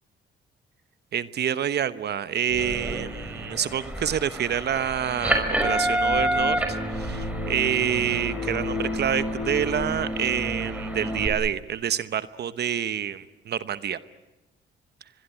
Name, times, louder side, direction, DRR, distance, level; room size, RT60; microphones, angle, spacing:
voice 1, 1.1-14.0, right 9 dB, 55° right, 14 dB, 1.0 m, -27 dB
sound 1, 2.5-11.3, left 1 dB, 20° left, 5.8 m, -33 dB
sound 2, 2.6-11.3, right 1 dB, 5° right, 5.4 m, -30 dB
24.0 x 22.5 x 9.5 m, 1.0 s
cardioid pair, 90°, 20 cm